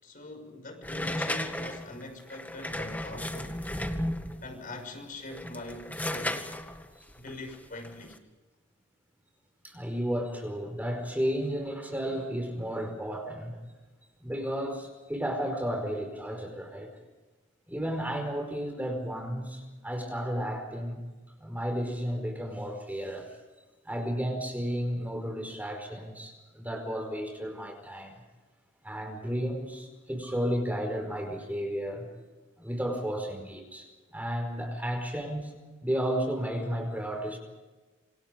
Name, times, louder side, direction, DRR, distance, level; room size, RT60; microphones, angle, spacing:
voice 1, 0.0-3.6 4.4-6.4 7.2-8.2, left 2 dB, 45° left, 5 dB, 6.1 m, -43 dB
sound 1, 0.8-4.5 5.2-8.2, left 1 dB, 10° left, 2.0 m, -34 dB
voice 2, 9.6-13.6 14.2-16.9 17.7-21.0 21.4-23.3 23.8-28.2 28.8-32.1 32.6-33.9 34.1-35.5 35.8-37.4, equal, 10° right, 3 dB, 4.9 m, -33 dB
27.5 x 26.5 x 5.3 m, 1.2 s
head